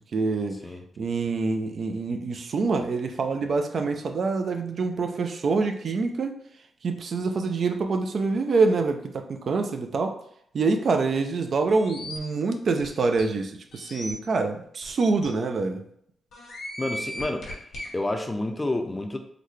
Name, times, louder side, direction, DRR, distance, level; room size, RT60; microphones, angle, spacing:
voice 1, 0.1-0.6 1.0-6.3 6.8-10.1 10.5-15.8, right 4 dB, 60° right, 6 dB, 0.4 m, -26 dB
sound 1, 11.7-12.2 12.8-12.9 13.2-13.3 13.7-14.1 14.8-14.9 15.2-15.3 16.3-17.9, left 1 dB, 70° left, 1.1 m, -37 dB
voice 2, 16.8-17.5 17.9-19.2, left 2 dB, 20° left, 6 dB, 0.5 m, -29 dB
3.9 x 2.1 x 3.2 m, 0.69 s
cardioid pair, 75°, 0 cm